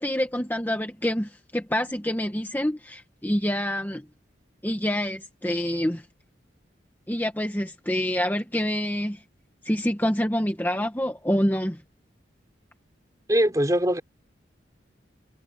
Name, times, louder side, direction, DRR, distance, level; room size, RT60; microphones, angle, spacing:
voice 1, 0.0-4.0 4.6-6.0 7.1-9.2 9.6-11.8, equal, 10° left, 1.4 m, -26 dB
voice 2, 13.3-14.0, equal, 20° right, 3.7 m, -21 dB
head